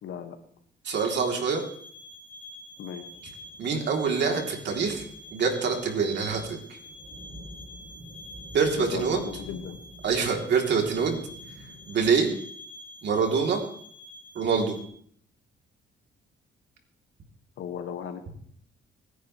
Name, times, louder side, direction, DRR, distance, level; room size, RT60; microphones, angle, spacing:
voice 1, 0.0-0.4 2.8-3.0 8.8-9.8 17.6-18.3, left 8 dB, 75° left, 6 dB, 2.0 m, -36 dB
voice 2, 0.8-1.6 3.6-5.0 5.3-6.8 8.5-9.2 10.0-11.2 11.9-12.3 13.0-13.6 14.3-14.8, right 5 dB, 60° right, 2 dB, 3.4 m, -25 dB
sound 1, 0.9-14.8, left 1 dB, 10° left, 3.9 m, -47 dB
sound 2, 2.8-12.2, equal, 40° right, 6.1 m, -48 dB
26.0 x 10.5 x 3.4 m, 0.63 s
cardioid pair, 90°, 20 cm